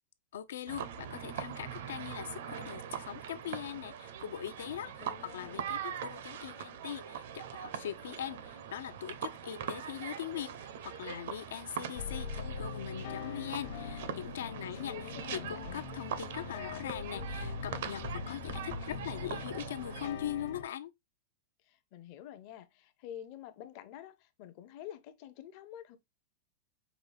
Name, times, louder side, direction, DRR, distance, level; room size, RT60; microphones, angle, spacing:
voice 1, 0.3-20.9, left 10 dB, 80° left, 0.5 m, -41 dB
sound 1, 0.7-20.1, right 8 dB, 60° right, 0.5 m, -42 dB
voice 2, 5.0-5.6 14.6-15.8 21.7-26.0, left 11 dB, 35° left, 0.6 m, -48 dB
sound 2, 11.9-20.6, left 5 dB, 50° left, 0.9 m, -42 dB
5.0 x 2.3 x 3.3 m
supercardioid pair, 175°, 0 cm